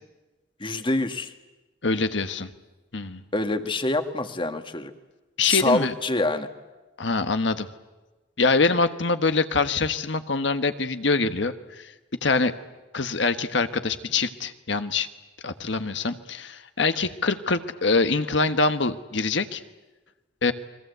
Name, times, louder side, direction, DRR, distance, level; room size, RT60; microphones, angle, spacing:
voice 1, 0.6-1.3 3.3-4.9 5.4-6.5, left 2 dB, 25° left, 8 dB, 1.7 m, -26 dB
voice 2, 1.8-2.5 2.9-3.2 5.4-5.9 7.0-7.7 8.4-11.9 12.2-12.5 12.9-15.1 15.4-19.6 20.4-20.5, left 3 dB, 70° left, 9 dB, 1.4 m, -24 dB
29.5 x 22.5 x 8.1 m, 1.1 s
head